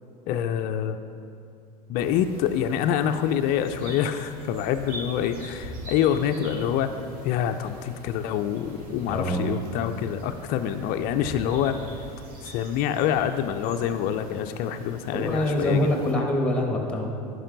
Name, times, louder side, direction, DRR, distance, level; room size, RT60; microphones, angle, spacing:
voice 1, 0.3-1.0 1.9-6.9 7.2-11.8 12.4-15.9, left 9 dB, 50° left, 7 dB, 0.4 m, -26 dB
sound 1, 1.9-16.1, equal, 50° right, 1.7 m, -43 dB
voice 2, 9.1-9.6 15.1-17.1, left 1 dB, 5° left, 1 dB, 1.4 m, -25 dB
11.0 x 4.8 x 3.9 m, 2.5 s
hypercardioid pair, 85°, 20 cm